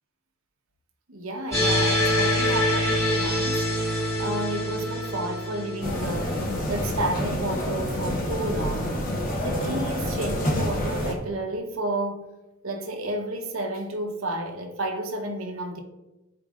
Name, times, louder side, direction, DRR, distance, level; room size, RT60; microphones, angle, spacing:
voice 1, 1.1-3.7 3.9-9.0 9.4-12.3 12.6-15.8, right 1 dB, 85° right, 1.0 m, -31 dB
sound 1, 1.5-6.6, equal, 15° left, 2.1 m, -25 dB
sound 2, 5.8-11.1, equal, 40° left, 1.0 m, -28 dB
12.0 x 4.6 x 2.5 m
head